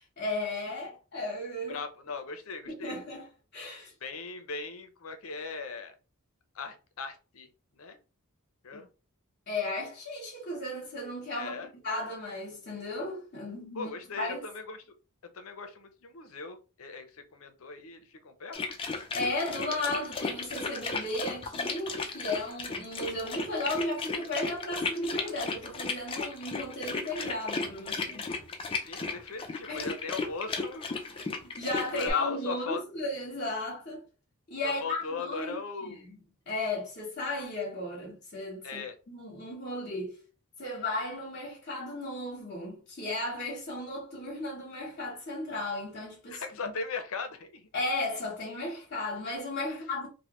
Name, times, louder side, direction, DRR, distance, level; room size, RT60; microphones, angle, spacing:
voice 1, 0.2-1.8 2.7-3.3 3.5-3.9 8.7-8.8 9.5-14.4 19.1-28.3 29.7-29.9 31.6-34.0 34.5-35.5 35.8-36.2 36.5-40.2 40.6-46.4 47.7-50.1, left 2 dB, 50° left, 1.0 m, -35 dB
voice 2, 1.7-3.0 4.0-5.9 6.5-7.5 7.7-8.0 8.6-8.9 11.3-11.7 13.7-14.8 15.3-18.6 28.8-30.9 31.2-31.3 31.9-32.8 34.6-36.1 38.6-39.0 46.3-47.7 49.7-49.9, left 4 dB, 65° left, 0.6 m, -38 dB
sound 1, 18.5-32.1, left 4 dB, 25° left, 0.4 m, -35 dB
3.1 x 2.1 x 3.0 m
head